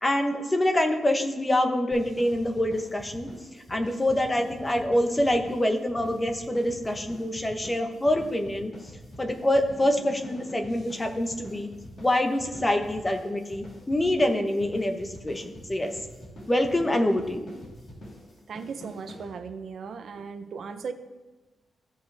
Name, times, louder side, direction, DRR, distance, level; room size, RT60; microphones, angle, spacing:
voice 1, 0.0-3.3 3.7-8.7 9.2-11.7 12.0-15.9 16.5-17.5, left 1 dB, 15° left, 5 dB, 1.0 m, -25 dB
sound 1, 1.9-19.7, left 1 dB, 50° left, 3.5 m, -45 dB
voice 2, 18.5-20.9, right 5 dB, 65° right, 9 dB, 0.6 m, -37 dB
16.0 x 5.4 x 3.4 m, 1.2 s
cardioid pair, 110°, 0 cm